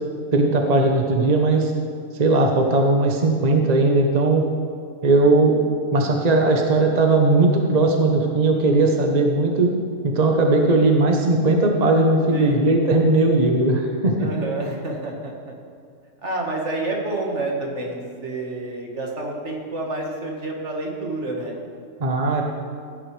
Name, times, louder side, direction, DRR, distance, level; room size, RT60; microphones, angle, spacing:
voice 1, 0.3-1.7 2.2-4.4 5.0-5.5 5.9-9.7 10.0-14.2 22.0-22.4, right 2 dB, 35° right, 2 dB, 0.9 m, -18 dB
voice 2, 12.3-12.7 14.2-15.3 16.2-21.6, right 2 dB, 60° right, -1 dB, 1.9 m, -28 dB
16.0 x 9.4 x 3.3 m, 2.2 s
omnidirectional pair, 1.4 m